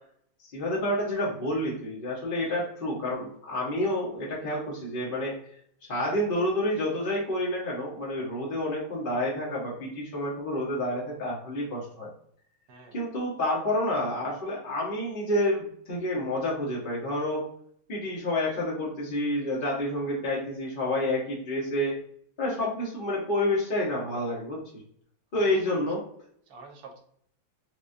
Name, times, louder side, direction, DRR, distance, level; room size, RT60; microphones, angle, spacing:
voice 1, 0.4-5.3 5.9-12.1 12.9-17.4 17.9-21.9 22.4-24.6 25.3-26.0, left 1 dB, 40° left, -5 dB, 0.8 m, -29 dB
voice 2, 12.7-13.0 25.3-25.6 26.5-27.0, right 4 dB, 60° right, 1 dB, 1.2 m, -48 dB
4.8 x 2.3 x 2.6 m, 0.65 s
omnidirectional pair, 2.1 m